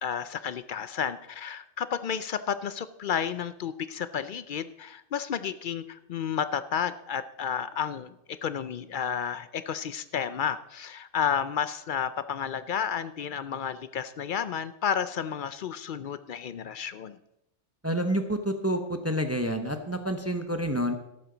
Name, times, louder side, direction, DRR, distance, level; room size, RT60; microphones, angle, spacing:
voice 1, 0.0-8.1 8.4-17.2, left 8 dB, 60° left, 13 dB, 0.5 m, -31 dB
voice 2, 17.8-20.9, equal, 15° right, 6 dB, 0.7 m, -28 dB
13.0 x 12.0 x 3.9 m, 0.86 s
omnidirectional pair, 1.3 m